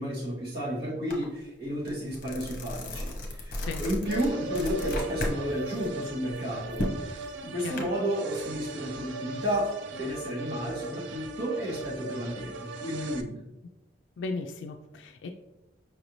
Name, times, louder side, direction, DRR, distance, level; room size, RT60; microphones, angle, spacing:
voice 1, 0.0-6.9 7.4-13.4, equal, 60° right, -6 dB, 1.5 m, -32 dB
sound 1, 1.1-1.2 1.6-5.4 5.7-7.8, left 1 dB, 45° left, 0.8 m, -34 dB
sound 2, 4.0-13.2, right 3 dB, 80° right, 0.4 m, -39 dB
voice 2, 7.6-7.9 14.2-15.3, left 3 dB, 85° left, 4 dB, 0.3 m, -36 dB
5.3 x 2.6 x 3.1 m, 0.96 s
head